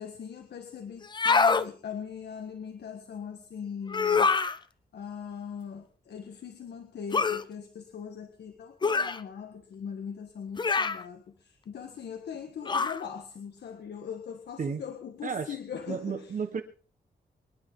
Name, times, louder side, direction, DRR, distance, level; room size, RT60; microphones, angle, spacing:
voice 1, 0.0-4.3 4.9-16.4, left 7 dB, 90° left, 6 dB, 1.6 m, -41 dB
sound 1, 1.0-1.7 3.9-4.6 7.1-7.4 8.8-9.2 10.6-11.0 12.7-13.0, left 4 dB, 25° left, 0.7 m, -25 dB
voice 2, 15.9-16.6, right 6 dB, 50° right, 8 dB, 1.3 m, -32 dB
25.0 x 10.5 x 3.9 m, 0.38 s
wide cardioid pair, 160°, 17 cm